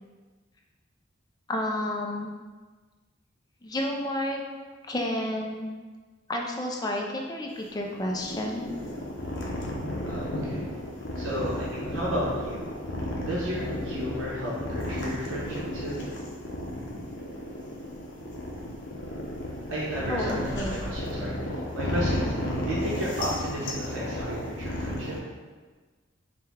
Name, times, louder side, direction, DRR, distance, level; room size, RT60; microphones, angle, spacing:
voice 1, 1.5-2.3 3.6-4.4 4.9-5.7 6.3-8.7 20.1-20.8, left 1 dB, 20° left, 0 dB, 0.4 m, -31 dB
sound 1, 7.5-25.2, left 1 dB, 65° left, 0.7 m, -33 dB
voice 2, 10.0-10.6 11.2-12.7 13.2-16.0 19.7-25.1, equal, 85° right, -6 dB, 0.8 m, -33 dB
5.0 x 2.2 x 3.5 m, 1.4 s
head